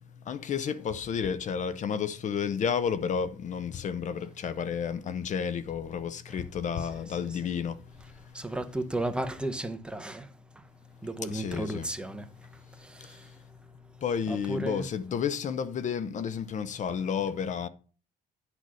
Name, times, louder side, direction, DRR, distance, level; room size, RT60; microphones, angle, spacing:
voice 1, 0.0-8.5 11.2-11.9 12.4-13.4 14.0-17.7, left 7 dB, 45° left, 0.7 m, -32 dB
voice 2, 8.3-10.3 10.5-10.6 11.0-12.5 12.8-13.3 14.3-14.8, right 1 dB, 5° right, 0.8 m, -34 dB
9.9 x 4.0 x 6.3 m
cardioid pair, 110°, 17 cm